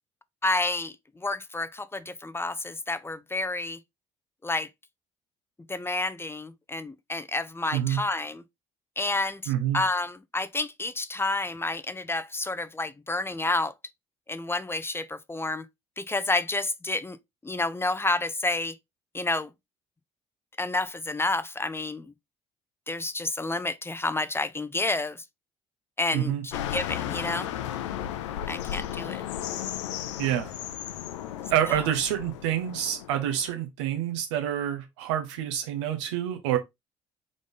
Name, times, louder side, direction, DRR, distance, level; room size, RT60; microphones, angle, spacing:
voice 1, 0.4-3.8 4.4-4.7 5.7-8.4 9.0-13.7 14.3-15.6 16.0-17.2 17.4-18.8 19.1-19.5 20.6-22.1 22.9-25.2 26.0-27.5 28.5-29.2 31.7-31.8, left 2 dB, 15° left, 0.6 m, -30 dB
voice 2, 7.7-8.0 9.5-9.8 26.1-26.4 30.2-30.5 31.5-36.6, right 10 dB, 85° right, 1.0 m, -27 dB
sound 1, 26.5-33.5, left 11 dB, 85° left, 0.4 m, -35 dB
3.9 x 3.6 x 3.8 m
hypercardioid pair, 55°, 15 cm